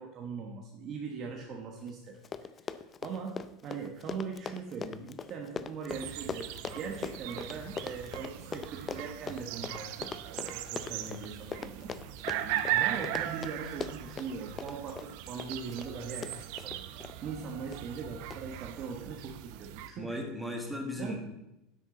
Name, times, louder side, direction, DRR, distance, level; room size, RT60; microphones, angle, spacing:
voice 1, 0.0-2.2 3.0-11.9 12.7-16.8 17.2-20.3 20.9-21.2, right 5 dB, 40° right, 1 dB, 1.2 m, -40 dB
Run, 1.9-2.0 2.2-17.2 17.7-18.0 18.3-18.4, left 6 dB, 25° left, 0.4 m, -41 dB
sound 1, 5.9-19.9, right 13 dB, 65° right, 0.6 m, -38 dB
voice 2, 12.2-12.6 20.0-21.2, left 1 dB, ahead, 1 dB, 1.8 m, -37 dB
9.7 x 8.2 x 3.9 m, 0.91 s
supercardioid pair, 135°, 0 cm